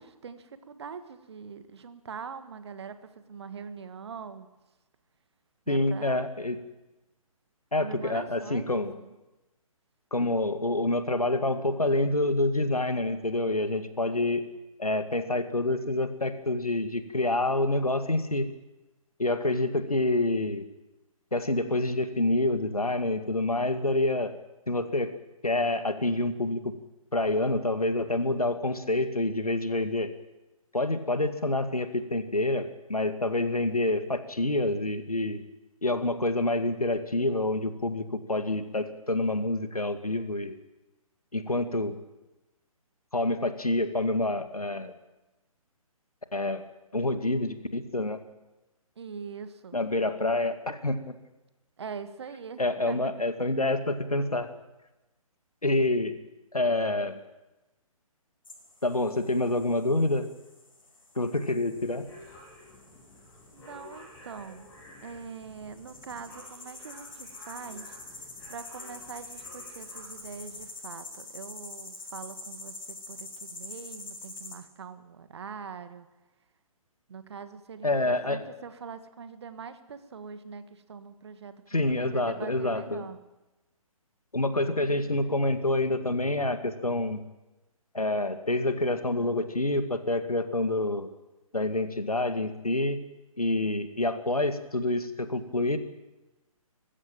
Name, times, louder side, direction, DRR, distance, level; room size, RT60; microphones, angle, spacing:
voice 1, 0.0-4.5 5.7-6.3 7.8-9.1 49.0-49.8 51.8-53.1 63.5-64.7 65.0-68.0 68.5-76.1 77.1-83.2, right 6 dB, 45° right, 11 dB, 1.7 m, -43 dB
voice 2, 5.7-6.6 7.7-8.9 10.1-14.4 14.8-18.5 19.2-20.6 21.3-24.3 24.7-25.1 25.4-26.7 27.1-30.1 30.7-35.4 35.8-40.6 41.3-42.0 43.1-44.9 46.3-46.6 46.9-48.2 49.7-51.2 52.6-54.5 55.6-56.1 56.5-57.2 58.8-60.3 61.2-62.0 77.8-78.4 81.7-83.1 84.3-87.2 87.9-91.1 91.5-93.0 93.4-95.8, left 2 dB, 80° left, 9 dB, 2.1 m, -27 dB
sound 1, 58.5-74.6, left 2 dB, 65° left, 5.7 m, -46 dB
sound 2, 61.7-70.7, left 1 dB, 15° left, 7.8 m, -52 dB
20.0 x 15.0 x 9.0 m, 1.0 s
figure-of-eight pair, 135°, 19 cm